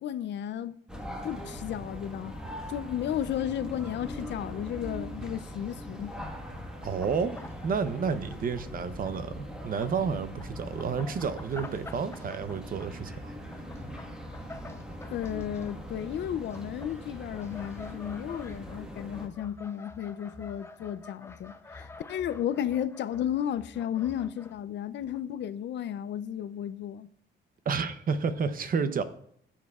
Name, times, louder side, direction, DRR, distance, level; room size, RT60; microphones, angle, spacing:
voice 1, 0.0-0.7 1.2-2.4 2.7-6.2 15.1-27.1, left 10 dB, 65° left, 0.5 m, -33 dB
sound 1, 0.9-19.3, equal, 5° right, 1.3 m, -41 dB
sound 2, 6.8-9.3 9.6-24.6 25.0-25.2, left 3 dB, 15° left, 0.5 m, -49 dB
voice 2, 6.8-13.4 27.7-29.0, right 5 dB, 45° right, 0.7 m, -30 dB
15.0 x 7.3 x 2.3 m
cardioid pair, 140°, 20 cm